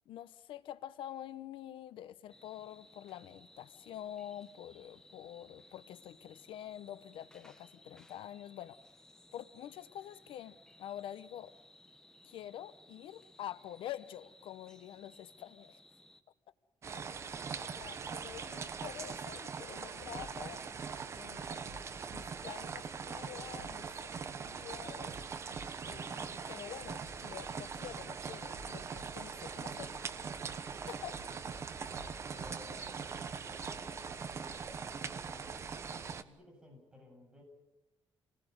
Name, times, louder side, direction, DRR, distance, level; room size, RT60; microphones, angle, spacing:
voice 1, 0.1-8.8 9.3-11.5 12.2-15.8 16.9-17.2 17.6-20.6 21.1-25.2 25.8-30.0 30.9-31.3, left 11 dB, 90° left, 1.0 m, -47 dB
sound 1, 2.3-16.2, left 1 dB, 5° left, 1.3 m, -61 dB
sound 2, 16.8-36.2, right 5 dB, 35° right, 1.2 m, -42 dB
sound 3, 20.2-33.8, right 3 dB, 60° right, 2.0 m, -55 dB
voice 2, 32.3-37.4, left 1 dB, 10° right, 8.0 m, -57 dB
28.0 x 19.5 x 8.0 m
cardioid pair, 170°, 9 cm